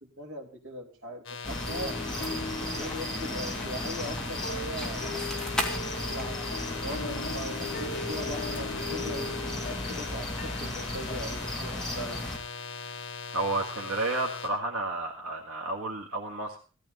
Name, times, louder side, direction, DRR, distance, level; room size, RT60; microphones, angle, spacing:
voice 1, 0.2-5.2 6.1-12.2, right 1 dB, 60° right, 0 dB, 3.9 m, -40 dB
sound 1, 1.2-14.5, left 4 dB, 60° left, 3.5 m, -40 dB
sound 2, 1.4-12.4, left 1 dB, 5° left, 2.7 m, -35 dB
sound 3, 1.7-11.8, left 3 dB, 40° left, 2.9 m, -40 dB
voice 2, 13.3-16.6, right 2 dB, 80° right, 0 dB, 2.0 m, -31 dB
16.5 x 14.0 x 4.1 m, 0.35 s
head